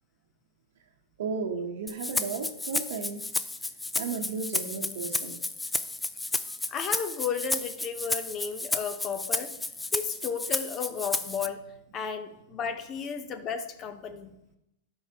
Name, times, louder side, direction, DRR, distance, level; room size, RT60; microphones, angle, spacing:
voice 1, 1.2-3.2 3.9-5.4, right 5 dB, 75° right, -1 dB, 0.9 m, -34 dB
Rattle (instrument), 1.9-11.5, left 2 dB, 5° left, 0.3 m, -32 dB
voice 2, 6.7-9.5 9.9-11.6 11.9-14.3, left 6 dB, 30° left, 9 dB, 0.7 m, -33 dB
11.5 x 4.8 x 2.9 m, 0.83 s
hypercardioid pair, 140°, 0 cm